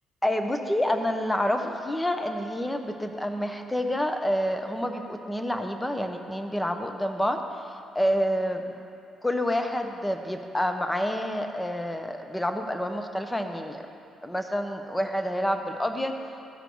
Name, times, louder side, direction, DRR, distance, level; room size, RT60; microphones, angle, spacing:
voice 1, 0.2-7.4 7.9-8.8 9.2-13.8 14.2-16.2, equal, 10° left, 5 dB, 0.8 m, -28 dB
14.5 x 5.1 x 4.6 m, 2.5 s
cardioid pair, 90°, 0 cm